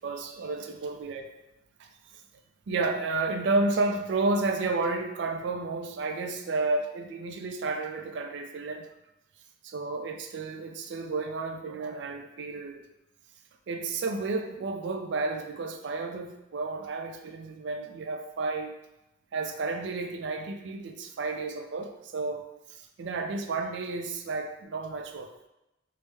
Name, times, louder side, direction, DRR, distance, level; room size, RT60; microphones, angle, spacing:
voice 1, 0.0-1.3 1.8-1.9 2.7-8.8 9.6-12.8 13.7-18.7 19.3-25.3, right 3 dB, 60° right, 5 dB, 0.3 m, -31 dB
3.2 x 2.0 x 3.2 m, 0.91 s
head